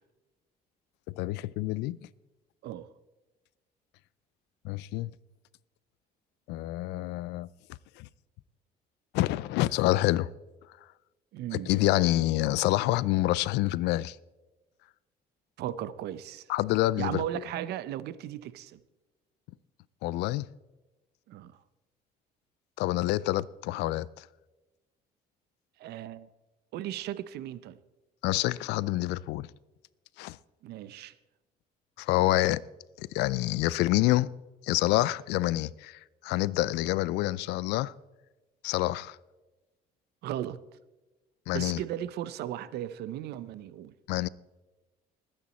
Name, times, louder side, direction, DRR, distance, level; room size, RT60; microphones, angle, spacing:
voice 1, 1.2-2.0 4.6-5.1 6.5-7.5 8.0-8.1 9.1-10.3 11.5-14.2 16.5-17.2 20.0-20.5 22.8-24.3 28.2-29.5 30.2-30.4 32.0-32.6 33.0-34.3 34.6-37.9 38.6-39.2 41.5-41.8 44.1-44.3, left 17 dB, 90° left, 0.5 m, -27 dB
voice 2, 11.3-11.7 15.6-16.5 17.0-18.8 21.3-21.5 25.8-26.3 26.7-27.8 30.6-31.1 40.2-40.6 41.5-43.9, right 12 dB, 75° right, 0.7 m, -36 dB
20.5 x 8.9 x 4.2 m
cardioid pair, 110°, 17 cm